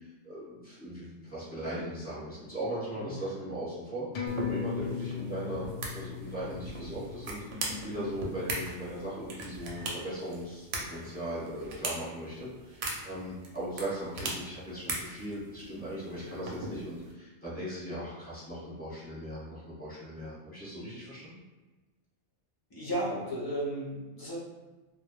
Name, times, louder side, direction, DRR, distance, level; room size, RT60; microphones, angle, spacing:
voice 1, 0.0-21.4, right 1 dB, 10° left, -9 dB, 0.8 m, -39 dB
sound 1, 4.1-9.1 9.4-9.5, left 8 dB, 65° left, 0.7 m, -39 dB
sound 2, 4.3-17.1, right 2 dB, 65° right, 0.8 m, -40 dB
voice 2, 22.7-24.3, right 1 dB, 30° left, -6 dB, 0.4 m, -34 dB
2.1 x 2.1 x 3.0 m, 1.2 s
omnidirectional pair, 1.3 m